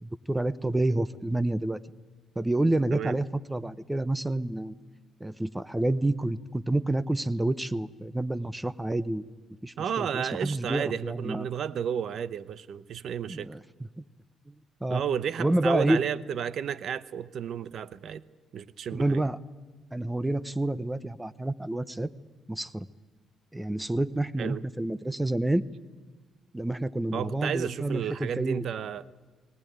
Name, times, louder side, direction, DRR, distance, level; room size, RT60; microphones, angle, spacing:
voice 1, 0.0-1.8 2.4-4.8 5.2-9.3 9.6-11.5 13.3-14.0 14.5-14.6 14.8-15.0 15.4-16.0 18.9-19.4 19.9-22.1 22.5-22.9 23.5-25.6 26.5-28.6, right 1 dB, 10° right, 17 dB, 0.8 m, -28 dB
voice 2, 9.8-13.5 14.9-18.2 18.5-19.2 24.4-24.6 27.1-29.0, right 8 dB, 65° right, 17 dB, 0.8 m, -32 dB
19.0 x 19.0 x 9.4 m, 1.4 s
cardioid pair, 90°, 0 cm